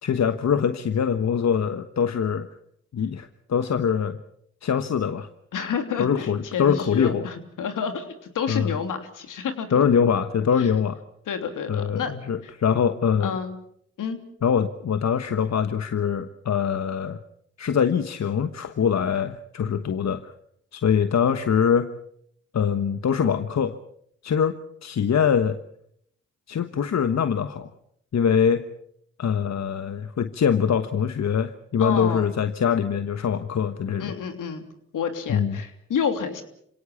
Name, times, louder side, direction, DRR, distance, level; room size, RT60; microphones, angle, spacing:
voice 1, 0.0-2.5 2.9-4.2 4.6-5.3 6.0-7.3 8.5-8.7 9.7-11.0 11.7-13.4 14.4-17.2 17.6-20.3 20.7-21.9 22.5-23.7 24.2-24.5 24.8-25.6 26.5-27.7 28.1-28.6 29.2-34.1 35.3-35.6, left 7 dB, 55° left, 10 dB, 1.3 m, -23 dB
voice 2, 5.5-10.2 10.6-10.7 11.3-12.1 12.4-12.5 13.2-13.6 14.0-14.2 31.8-32.3 34.0-34.6 34.9-36.4, left 7 dB, 70° left, 7 dB, 3.2 m, -29 dB
27.0 x 18.0 x 7.2 m, 0.70 s
hypercardioid pair, 45°, 32 cm